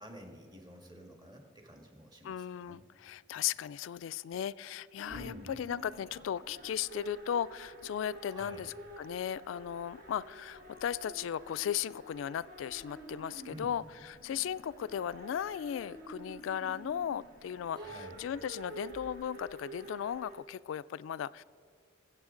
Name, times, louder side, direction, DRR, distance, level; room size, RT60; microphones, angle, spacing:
voice 1, 0.0-2.9 5.1-5.5 8.3-8.7 13.5-13.7 17.7-18.3, equal, 20° right, 2 dB, 1.6 m, -50 dB
voice 2, 2.2-21.4, left 9 dB, 75° left, 18 dB, 0.3 m, -36 dB
sound 1, 5.0-20.4, right 1 dB, 45° right, 1.3 m, -49 dB
22.0 x 8.1 x 3.8 m, 2.4 s
head